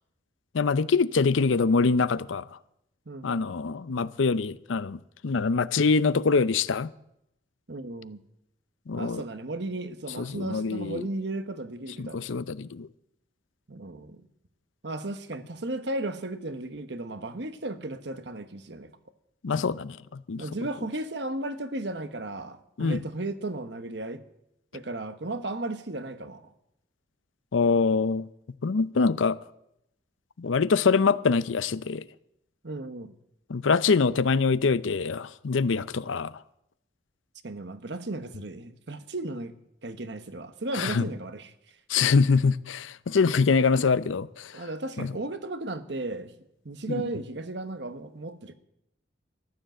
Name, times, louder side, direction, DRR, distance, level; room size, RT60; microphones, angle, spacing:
voice 1, 0.5-2.5 3.2-6.9 8.9-9.2 10.2-11.1 12.0-12.9 19.4-20.4 22.8-23.0 27.5-28.3 28.6-29.4 30.4-32.0 33.5-36.3 40.7-41.1 41.9-44.6 45.0-45.1 46.9-47.0, left 4 dB, 85° left, 0.6 m, -24 dB
voice 2, 3.1-3.5 7.7-8.2 8.9-12.2 13.7-14.3 14.8-19.0 20.4-24.2 24.7-26.5 32.6-33.1 37.4-39.5 39.8-41.5 44.5-46.3 46.6-48.5, right 2 dB, 60° right, 1.1 m, -35 dB
14.0 x 12.0 x 7.7 m
head